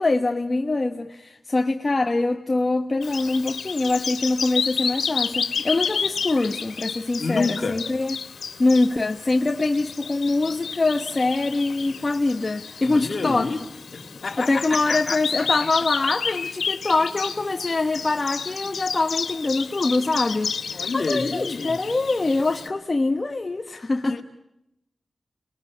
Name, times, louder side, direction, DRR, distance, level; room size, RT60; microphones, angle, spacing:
voice 1, 0.0-8.1 8.6-13.5 14.4-24.2, left 2 dB, 35° left, 1.3 m, -24 dB
Bird vocalization bird call bird song, 3.0-22.7, left 6 dB, 90° left, 2.1 m, -31 dB
voice 2, 7.2-7.8 12.8-13.6 13.9-15.5 20.7-21.8 24.1-24.2, left 3 dB, 55° left, 2.6 m, -29 dB
29.5 x 21.0 x 9.4 m
wide cardioid pair, 95°, 0 cm